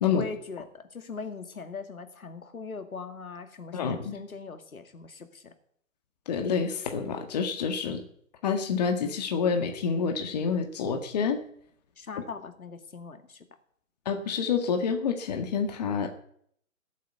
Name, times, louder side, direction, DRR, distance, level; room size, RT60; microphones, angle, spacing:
voice 1, 0.1-5.5 12.0-13.5, left 4 dB, 80° left, 8 dB, 2.3 m, -40 dB
voice 2, 3.7-4.2 6.2-8.0 8.4-11.4 14.0-16.2, left 6 dB, 30° left, 5 dB, 1.7 m, -28 dB
17.5 x 8.3 x 8.1 m, 0.67 s
hypercardioid pair, 160°, 42 cm